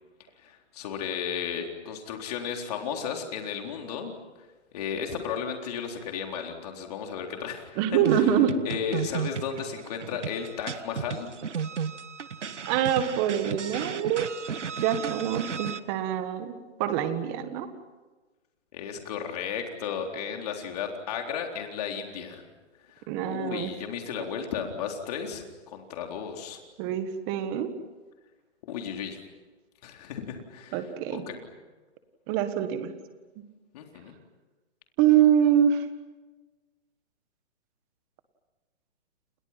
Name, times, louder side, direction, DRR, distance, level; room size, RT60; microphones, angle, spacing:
voice 1, 0.4-4.1 4.7-8.3 8.6-11.3 18.7-22.4 22.9-26.6 28.7-29.2 29.8-30.8 31.1-31.6 33.7-34.1, left 7 dB, 35° left, 3 dB, 3.9 m, -34 dB
voice 2, 7.8-8.5 12.7-14.3 14.8-17.7 23.1-23.7 26.8-27.7 30.7-31.2 32.3-32.9 35.0-35.9, right 9 dB, 20° right, 10 dB, 1.6 m, -25 dB
sound 1, 8.0-15.8, right 6 dB, 80° right, 1.6 m, -34 dB
29.5 x 29.0 x 5.9 m, 1.2 s
hypercardioid pair, 160°, 35 cm